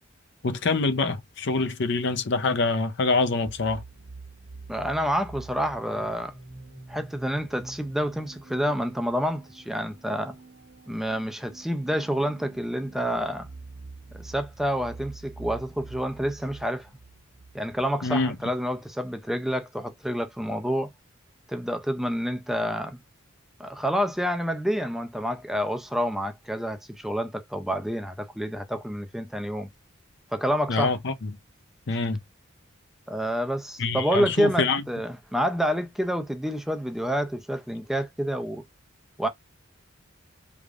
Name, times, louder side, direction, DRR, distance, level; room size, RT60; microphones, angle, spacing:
voice 1, 0.4-3.8 18.0-18.4 30.7-31.3 31.9-32.2 33.8-34.8, left 3 dB, 60° left, 0.6 m, -25 dB
sound 1, 3.5-19.0, right 3 dB, 60° right, 1.3 m, -46 dB
voice 2, 4.7-6.3 6.9-10.4 10.9-13.5 14.1-16.9 17.5-20.9 21.5-23.0 23.6-29.7 30.3-30.9 33.1-38.6 39.2-39.3, equal, ahead, 0.4 m, -28 dB
4.6 x 3.5 x 2.4 m
head